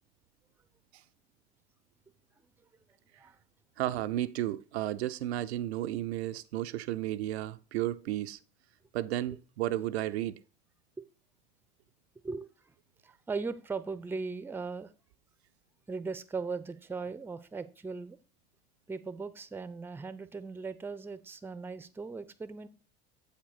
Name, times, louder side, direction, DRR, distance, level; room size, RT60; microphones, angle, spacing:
voice 1, 3.8-8.4 8.9-10.4, right 14 dB, 65° right, 0.5 m, -33 dB
voice 2, 12.2-12.7 13.0-14.9 15.9-18.2 18.9-22.7, right 4 dB, 5° right, 0.5 m, -38 dB
8.1 x 5.0 x 4.1 m
figure-of-eight pair, 65°, 35 cm